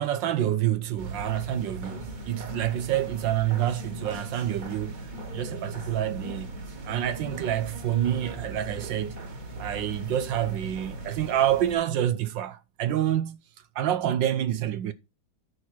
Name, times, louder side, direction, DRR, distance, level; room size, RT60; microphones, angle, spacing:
voice 1, 0.0-5.0 5.3-6.6 6.8-9.2 9.6-13.4 13.7-14.9, right 11 dB, 75° right, 1.4 m, -27 dB
sound 1, 1.0-11.7, right 1 dB, 45° right, 2.3 m, -39 dB
9.7 x 6.4 x 4.4 m
omnidirectional pair, 2.1 m